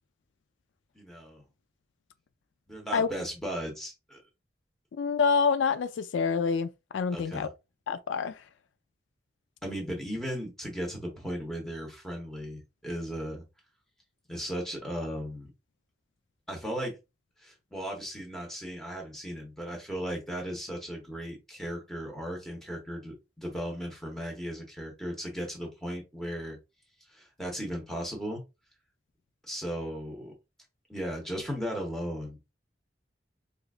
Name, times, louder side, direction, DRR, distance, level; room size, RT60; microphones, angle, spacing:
voice 1, 0.9-1.4 2.7-4.2 7.1-7.5 9.6-13.4 14.3-15.5 16.5-17.0 17.4-26.6 27.1-28.4 29.5-30.3 30.9-32.5, equal, ahead, 1.1 m, -36 dB
voice 2, 5.0-7.5 7.9-8.4, left 5 dB, 85° left, 0.4 m, -27 dB
4.9 x 2.5 x 2.4 m
head